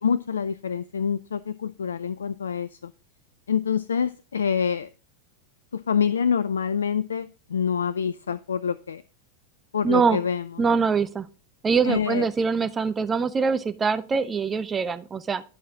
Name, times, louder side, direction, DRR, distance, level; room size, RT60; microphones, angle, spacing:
voice 1, 0.0-2.9 3.5-4.9 5.7-9.0 9.7-10.5 11.8-12.3, left 7 dB, 80° left, 17 dB, 0.4 m, -26 dB
voice 2, 9.8-10.2 10.6-11.3 11.6-15.4, right 5 dB, 20° right, 12 dB, 0.9 m, -23 dB
12.0 x 5.7 x 3.8 m, 0.36 s
hypercardioid pair, 95°, 0 cm